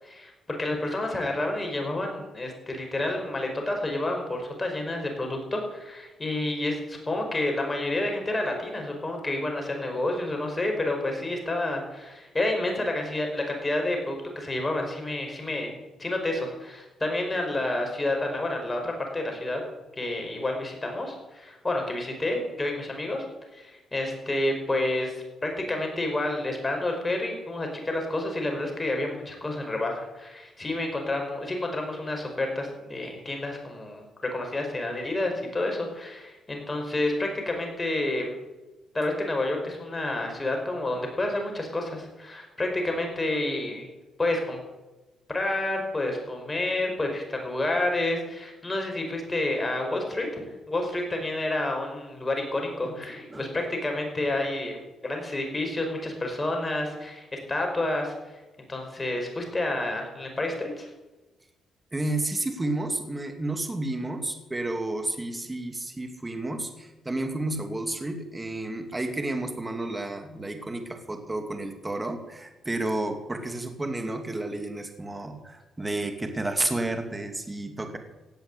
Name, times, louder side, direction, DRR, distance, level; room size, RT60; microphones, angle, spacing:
voice 1, 0.0-15.7 16.0-19.6 20.0-23.3 23.5-34.0 34.3-38.3 38.9-43.9 44.2-44.6 45.3-58.3 58.7-60.9, left 2 dB, 20° left, 2 dB, 5.3 m, -29 dB
voice 2, 52.8-53.5 61.9-78.0, right 2 dB, 15° right, 6 dB, 2.5 m, -31 dB
17.0 x 8.2 x 8.2 m, 1.1 s
cardioid pair, 90°, 0 cm